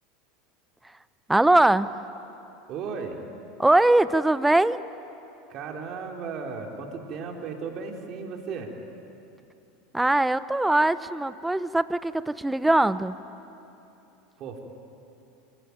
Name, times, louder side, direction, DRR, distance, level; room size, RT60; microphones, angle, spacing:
voice 1, 1.3-1.9 3.6-4.8 9.9-13.1, right 2 dB, 5° right, 16 dB, 0.7 m, -21 dB
voice 2, 2.7-3.2 5.5-8.7 14.4-14.6, right 5 dB, 45° right, 2 dB, 3.6 m, -35 dB
26.5 x 17.0 x 9.5 m, 2.9 s
hypercardioid pair, 85°, 0 cm